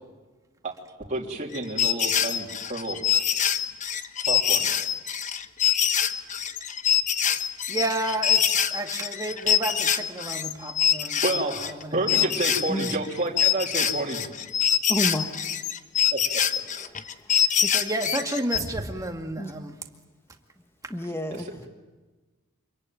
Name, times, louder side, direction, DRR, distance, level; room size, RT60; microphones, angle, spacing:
voice 1, 1.1-3.0 4.3-4.6 11.2-14.3 16.1-16.2 21.3-21.7, right 2 dB, 35° right, -2 dB, 3.1 m, -29 dB
sound 1, 1.5-11.8 12.1-18.6, left 9 dB, 35° left, 1.0 m, -25 dB
voice 2, 7.7-12.3 12.6-12.7 17.4-19.8, right 2 dB, 15° right, 3 dB, 2.1 m, -32 dB
voice 3, 14.9-15.5 16.7-16.9 17.6-17.7 19.4-19.5 20.9-21.6, equal, 10° left, 6 dB, 1.3 m, -30 dB
26.0 x 22.5 x 9.4 m, 1.3 s
head